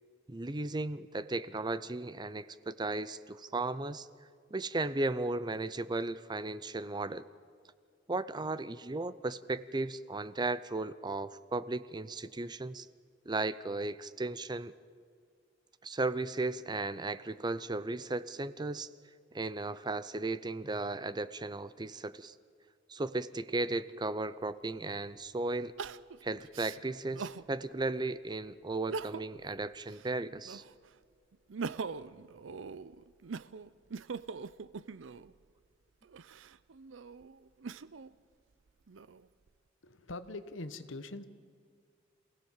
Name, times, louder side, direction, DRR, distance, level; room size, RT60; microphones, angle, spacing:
voice 1, 0.3-4.1 4.5-7.2 8.1-12.9 13.3-14.7 15.8-18.9 19.3-22.3 22.9-25.7 26.2-30.6, right 2 dB, 20° right, 16 dB, 0.6 m, -35 dB
Crying sobbing, 24.4-24.5 25.8-27.5 28.0-28.1 28.7-29.4 29.8-30.9 31.3-35.3 36.0-38.1 38.7-39.5, right 5 dB, 85° right, 0.6 m, -42 dB
voice 2, 39.8-41.2, left 2 dB, 85° left, 11 dB, 1.2 m, -43 dB
27.0 x 17.0 x 7.3 m, 2.1 s
head